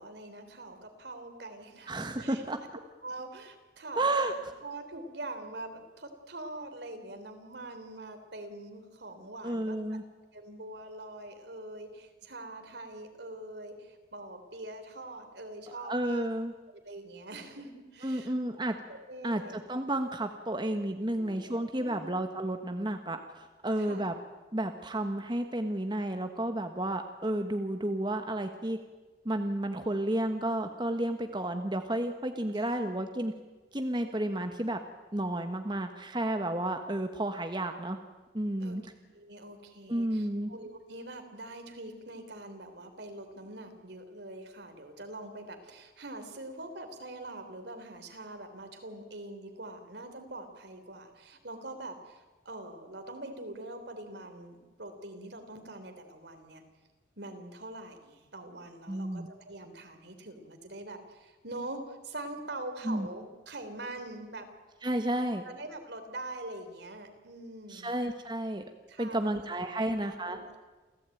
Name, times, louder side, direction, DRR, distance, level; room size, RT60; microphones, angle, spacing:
voice 1, 0.0-2.4 3.0-4.3 4.6-10.0 10.3-16.3 16.8-18.3 18.9-19.6 21.2-22.1 23.8-24.1 32.5-32.8 38.6-38.8 39.0-56.6 57.2-64.5 65.4-67.9 68.9-69.4 69.8-70.6, right 2 dB, 70° right, 6 dB, 3.6 m, -44 dB
voice 2, 1.9-2.6 4.0-4.3 9.4-10.0 15.8-16.5 18.0-18.8 19.2-24.1 24.5-28.8 29.2-33.3 33.7-34.8 35.1-38.0 38.3-38.8 39.9-40.5 58.9-59.3 62.8-63.1 64.8-65.4 67.7-68.6 69.0-70.4, right 1 dB, 25° right, 6 dB, 1.2 m, -31 dB
28.0 x 15.5 x 9.2 m, 1.3 s
head